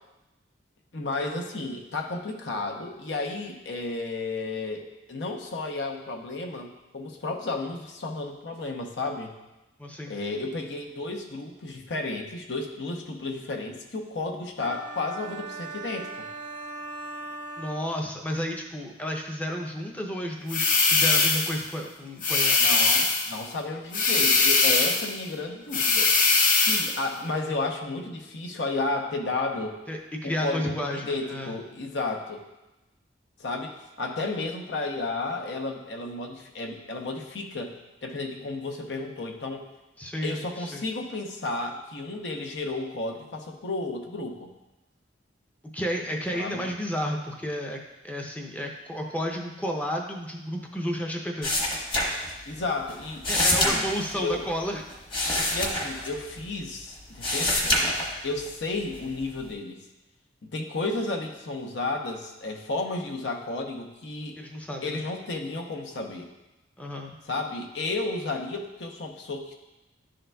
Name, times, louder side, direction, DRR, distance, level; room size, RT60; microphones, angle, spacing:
voice 1, 0.9-9.4 10.1-16.3 22.6-26.1 26.5-29.8 30.2-32.4 33.4-39.6 40.2-44.5 46.3-46.7 52.5-53.9 54.2-54.4 55.5-59.8 60.4-64.4 64.8-66.3 67.3-69.5, left 3 dB, 80° left, 2 dB, 0.8 m, -32 dB
voice 2, 9.8-10.2 17.6-22.6 29.9-31.6 40.0-40.9 45.7-51.5 53.3-54.8 64.3-65.0 66.8-67.2, equal, 10° left, 1 dB, 0.5 m, -32 dB
sound 1, 14.6-18.5, right 3 dB, 80° right, 0.6 m, -39 dB
sound 2, 20.5-21.6 22.2-23.3 23.9-25.1 25.7-27.0, left 4 dB, 45° left, 0.7 m, -21 dB
sound 3, 51.4-52.6 52.9-56.7 57.0-58.5 58.9-59.5, left 1 dB, 30° left, 1.1 m, -26 dB
11.0 x 3.8 x 2.2 m, 1.0 s
head